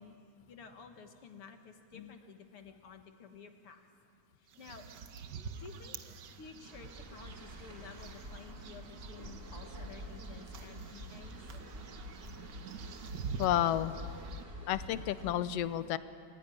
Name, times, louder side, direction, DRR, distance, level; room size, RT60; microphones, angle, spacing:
voice 1, 0.0-3.9 4.4-4.9 5.6-6.0 6.4-11.5, left 5 dB, 55° left, 6 dB, 2.2 m, -52 dB
sound 1, 4.5-14.4, right 6 dB, 85° right, 0.9 m, -47 dB
sound 2, 6.6-15.3, equal, 20° right, 5.1 m, -47 dB
voice 2, 13.4-14.0 14.7-16.0, left 12 dB, 70° left, 14 dB, 1.6 m, -31 dB
29.5 x 16.0 x 9.9 m, 2.4 s
omnidirectional pair, 3.3 m